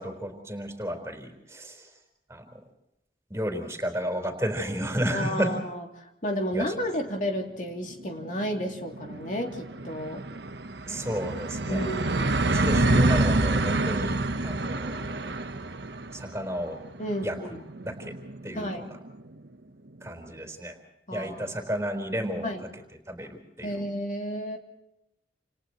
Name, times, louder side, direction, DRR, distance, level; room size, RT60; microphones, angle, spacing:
voice 1, 0.0-1.9 2.3-2.4 3.3-5.6 6.5-6.7 10.9-11.9 12.3-15.3 16.1-16.8 17.2-17.4 17.8-18.1 18.4-19.0 20.0-20.8 21.1-22.8 23.1-23.9, equal, 15° right, 4 dB, 4.3 m, -32 dB
voice 2, 5.1-10.3 11.7-12.6 17.0-17.6 18.5-18.9 21.1-21.5 22.4-22.6 23.6-24.6, equal, 45° left, 2 dB, 2.8 m, -32 dB
sound 1, 7.1-7.2 7.5-7.6 7.8-19.3, right 2 dB, 75° right, 1.1 m, -28 dB
30.0 x 28.5 x 3.1 m, 0.87 s
head